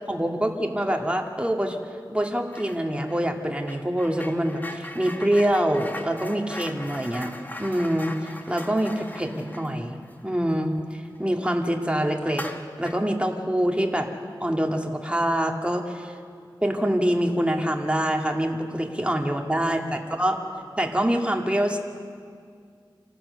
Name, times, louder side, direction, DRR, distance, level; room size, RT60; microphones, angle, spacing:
voice 1, 0.1-1.8 2.1-12.5 12.8-14.1 14.4-16.2 16.6-19.8 20.2-20.4 20.8-21.8, equal, 15° right, 2 dB, 2.1 m, -25 dB
sound 1, 2.5-2.8 3.1-11.3 11.6-11.7 12.3-13.1, left 1 dB, 20° left, 1.4 m, -40 dB
26.5 x 15.0 x 6.8 m, 2.2 s
wide cardioid pair, 50°, 9 cm